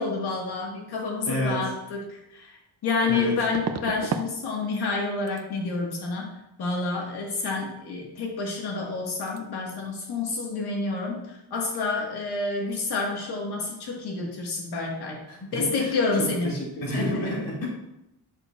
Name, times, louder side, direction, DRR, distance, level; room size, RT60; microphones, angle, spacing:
voice 1, 0.0-6.3 6.6-15.2 15.5-16.5 16.9-17.3, left 3 dB, 80° left, -1 dB, 1.7 m, -29 dB
voice 2, 1.3-1.6 3.1-3.3 15.3-17.7, left 1 dB, 60° left, -4 dB, 2.4 m, -30 dB
sound 1, 2.0-2.1 3.5-4.3 4.6-5.0 5.3-5.5 8.4-8.5 8.8-9.0 9.3-9.4, right 6 dB, 45° right, 0.5 m, -33 dB
6.6 x 6.4 x 2.4 m, 0.86 s
cardioid pair, 110°, 38 cm